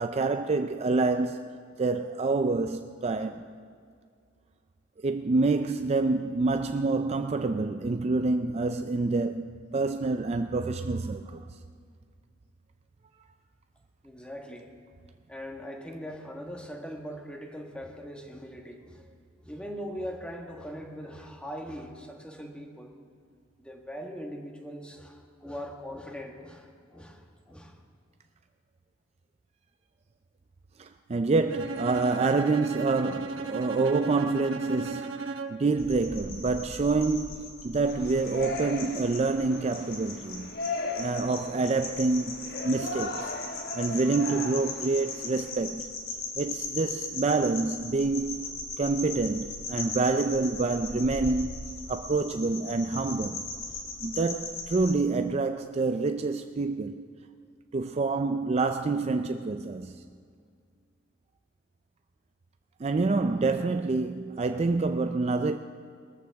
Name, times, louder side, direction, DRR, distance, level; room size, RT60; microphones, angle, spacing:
voice 1, 0.0-3.5 5.0-9.5 9.7-11.4 30.8-40.5 41.0-43.3 43.7-45.9 46.4-48.5 48.8-51.5 51.9-53.4 54.0-57.1 57.7-60.0 62.8-65.6, right 3 dB, 30° right, 0.4 m, -27 dB
voice 2, 14.0-14.7 15.3-19.1 19.4-22.9 23.6-27.8, equal, 5° left, 1.3 m, -41 dB
Bowed string instrument, 31.5-35.8, right 3 dB, 80° right, 1.0 m, -36 dB
sound 1, 35.8-54.9, left 3 dB, 90° left, 3.3 m, -39 dB
Yell, 37.8-45.5, left 2 dB, 55° left, 1.1 m, -38 dB
21.0 x 14.0 x 3.5 m
head